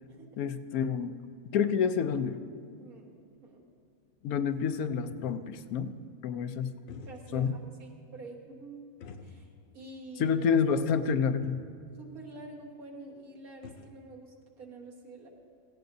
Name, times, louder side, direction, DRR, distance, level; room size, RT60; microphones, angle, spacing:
voice 1, 0.4-1.1 1.5-2.4 4.2-5.9 6.2-6.7 7.3-7.6 10.2-11.6, left 6 dB, 80° left, 10 dB, 1.1 m, -28 dB
sound 1, 2.6-2.7 3.1-3.2 3.9-4.0 4.2-5.7 6.7-7.5 7.9-8.0 9.0-9.8 10.1-10.2 11.1-11.2 11.4-11.8 13.1-13.2 13.4-14.0, left 5 dB, 55° left, 0.6 m, -49 dB
voice 2, 2.8-3.1 3.4-3.6 7.0-8.8 9.2-10.4 12.0-15.3, right 2 dB, 80° right, -1 dB, 2.0 m, -47 dB
16.5 x 15.5 x 2.7 m, 2.4 s
omnidirectional pair, 1.5 m